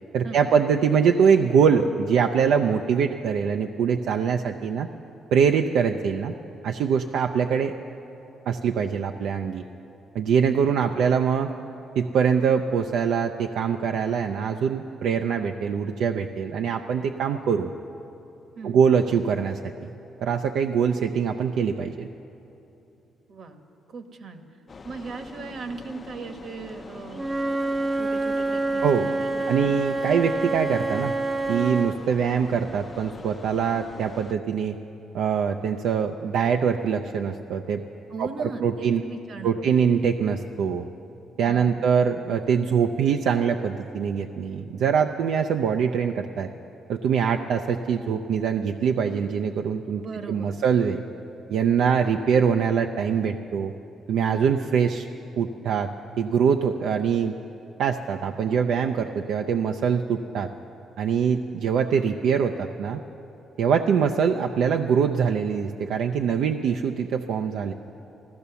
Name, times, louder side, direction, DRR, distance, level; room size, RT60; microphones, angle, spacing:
voice 1, 0.1-4.9 5.3-6.3 6.6-7.7 8.5-9.6 10.1-11.5 12.0-17.7 18.6-19.9 20.2-22.1 28.8-29.0 29.5-31.1 31.5-34.8 35.1-37.8 38.2-39.0 39.4-40.9 41.4-46.5 46.9-50.0 50.3-51.0 51.5-53.7 54.1-55.1 55.4-55.9 56.2-57.3 57.8-60.5 61.0-63.0 63.6-67.7, right 7 dB, 80° right, 5 dB, 0.5 m, -23 dB
voice 2, 10.7-11.2 18.5-18.8 20.9-21.0 23.3-23.6 23.9-24.4 24.8-27.5 27.9-30.0 38.1-39.9 41.4-41.9 49.9-50.6, right 4 dB, 55° right, 7 dB, 1.2 m, -39 dB
sound 1, 24.7-34.3, left 4 dB, 35° left, 0.6 m, -43 dB
Wind instrument woodwind instrument, 27.1-32.0, right 2 dB, 15° right, 0.6 m, -27 dB
14.5 x 14.0 x 6.9 m, 2.9 s
cardioid pair, 90°, 0 cm